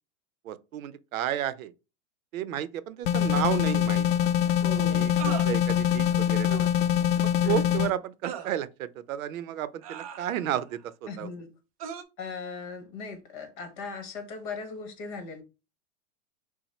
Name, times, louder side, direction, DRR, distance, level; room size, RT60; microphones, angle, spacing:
voice 1, 0.4-1.7 2.3-4.3 4.9-6.7 7.2-11.3, right 11 dB, 85° right, 0.7 m, -32 dB
sound 1, 3.0-7.9, left 10 dB, 65° left, 0.5 m, -24 dB
sound 2, 3.3-3.4 5.2-5.5 6.5-6.8 8.2-8.5 9.8-10.6 11.8-12.0, right 9 dB, 30° right, 0.4 m, -38 dB
voice 2, 4.6-5.3 7.4-7.8 11.1-11.5 12.2-15.4, left 4 dB, 35° left, 1.3 m, -38 dB
5.8 x 2.2 x 4.2 m
supercardioid pair, 160°, 40 cm